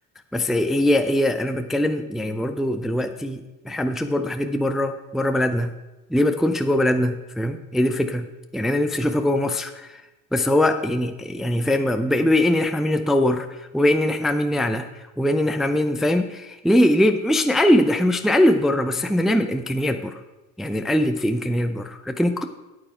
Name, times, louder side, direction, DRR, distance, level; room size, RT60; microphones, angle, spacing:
voice 1, 0.3-5.8 6.1-8.3 8.5-9.7 10.3-14.9 15.2-20.2 20.6-22.4, left 1 dB, ahead, 7 dB, 0.5 m, -21 dB
8.8 x 8.7 x 4.9 m, 1.1 s
supercardioid pair, 95°, 40 cm